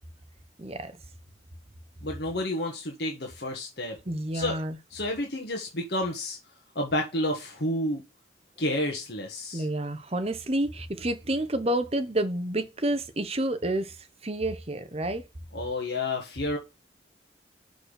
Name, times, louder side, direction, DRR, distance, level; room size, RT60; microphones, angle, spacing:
voice 1, 0.6-0.9 4.1-4.8 9.5-15.3, right 1 dB, 30° right, 0.9 m, -29 dB
voice 2, 2.0-4.0 4.3-4.6 4.9-6.4 6.7-8.0 8.6-9.7 15.5-16.6, left 1 dB, 60° left, 1.6 m, -30 dB
6.2 x 5.3 x 6.5 m
head